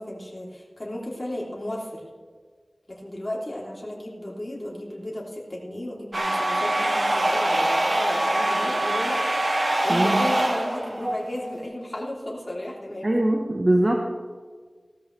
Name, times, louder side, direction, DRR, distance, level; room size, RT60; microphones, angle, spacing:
voice 1, 0.0-2.1 2.9-9.2 9.5-13.2, left 1 dB, 30° left, -4 dB, 3.2 m, -34 dB
sound 1, 6.1-11.6, right 1 dB, 55° right, 1.8 m, -24 dB
voice 2, 9.9-10.3 13.0-14.0, right 1 dB, 40° right, 1 dB, 1.3 m, -21 dB
17.0 x 13.0 x 3.4 m, 1.5 s
wide cardioid pair, 55°, 0 cm